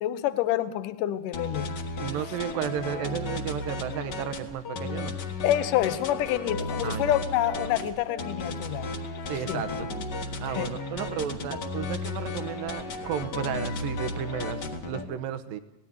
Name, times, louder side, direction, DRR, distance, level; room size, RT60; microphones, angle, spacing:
voice 1, 0.0-1.7 5.4-8.9 9.5-9.6 10.5-10.7, left 12 dB, 75° left, 12 dB, 2.3 m, -27 dB
sound 1, 1.3-15.0, left 3 dB, 50° left, 1.4 m, -34 dB
voice 2, 2.0-5.2 6.8-7.1 9.3-9.9 10.4-15.6, right 9 dB, 80° right, 10 dB, 2.7 m, -33 dB
19.0 x 15.0 x 9.5 m, 0.88 s
omnidirectional pair, 4.1 m